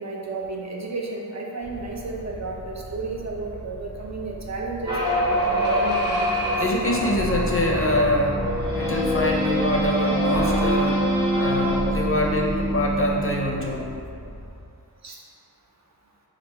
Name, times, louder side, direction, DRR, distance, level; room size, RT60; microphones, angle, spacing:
voice 1, 0.0-5.0 5.4-6.5 15.0-15.2, right 3 dB, 45° right, -1 dB, 0.5 m, -32 dB
sound 1, 1.6-14.5, equal, 85° right, 1.0 m, -40 dB
sound 2, 4.8-13.6, equal, 10° right, 0.8 m, -25 dB
voice 2, 6.6-8.4 8.7-11.0 11.3-13.9, left 1 dB, 35° left, -1 dB, 0.5 m, -24 dB
sound 3, 7.1-13.4, equal, 25° right, 1.1 m, -30 dB
3.3 x 2.4 x 4.3 m, 2.5 s
wide cardioid pair, 60°, 38 cm